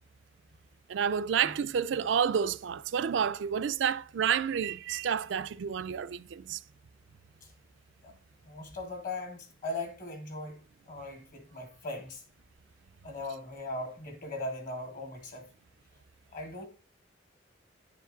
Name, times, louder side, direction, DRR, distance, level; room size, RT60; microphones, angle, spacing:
voice 1, 0.9-6.6, right 7 dB, 65° right, 0.4 m, -29 dB
voice 2, 8.4-10.6 10.8-12.2 13.0-15.5 16.3-16.7, left 2 dB, 45° left, 1.8 m, -39 dB
9.8 x 5.0 x 3.9 m
head